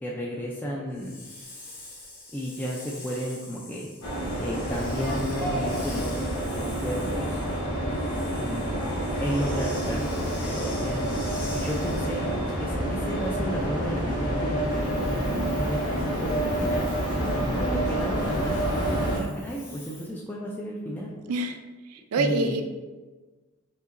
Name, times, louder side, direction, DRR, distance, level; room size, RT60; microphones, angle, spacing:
voice 1, 0.0-1.2 2.3-3.9 4.4-7.4 8.4-8.9 9.2-11.0 11.3-12.3 12.6-16.9 17.4-21.1 22.2-22.6, equal, 10° left, -3 dB, 0.3 m, -33 dB
Hiss, 0.9-12.4 14.7-20.1, left 2 dB, 40° left, 1.1 m, -46 dB
sound 1, 4.0-19.2, right 1 dB, 80° left, 1.0 m, -28 dB
voice 2, 21.3-21.6 21.9-22.6, right 2 dB, 90° right, 7 dB, 0.4 m, -26 dB
5.3 x 2.8 x 2.5 m, 1.3 s
head